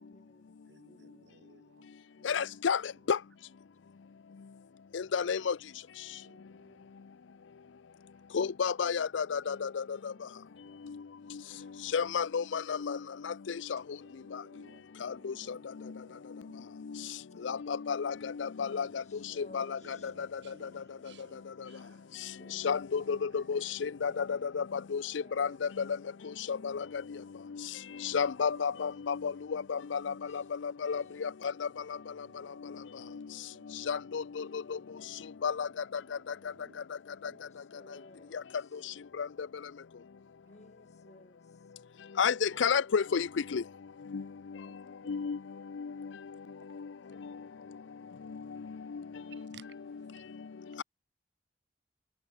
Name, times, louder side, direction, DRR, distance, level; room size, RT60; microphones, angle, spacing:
voice 1, 0.0-0.6 0.9-1.4 6.2-6.9 15.0-15.6 16.2-16.7 17.1-17.5 18.8-20.3 21.9-22.7 25.1-25.6 29.9-30.5 31.0-31.1 37.2-38.9 40.4-41.7, left 1 dB, 40° left, 5.5 m, -59 dB
voice 2, 0.6-1.9 2.2-2.4 6.2-6.9 10.2-11.0 11.5-11.8 13.8-17.0 17.3-17.5 19.1-24.2 26.5-27.1 27.8-28.1 28.5-28.8 30.4-30.5 30.9-31.2 31.7-33.2 33.5-33.8 35.6-36.8 37.2-37.6 40.5-40.6 42.5-42.6 44.6-45.1 49.3-50.2 50.7-50.8, right 3 dB, 75° right, 3.8 m, -61 dB
voice 3, 2.2-3.2 4.9-5.6 8.3-10.1 10.9-11.0 11.3-11.4 11.9-13.8 14.3-14.4 15.0-15.6 15.8-15.9 16.9-17.1 17.4-20.8 22.5-25.9 26.2-27.2 27.5-27.7 28.0-31.7 32.2-32.3 32.6-32.8 33.1-33.3 33.7-34.8 35.4-36.0 39.2-39.3 42.2-43.6 44.1-44.2 44.5-44.7 45.1-45.4 45.7-46.1 46.7-46.9 47.2-47.3 48.3-49.5 49.9-50.0, left 6 dB, 90° left, 0.5 m, -32 dB
head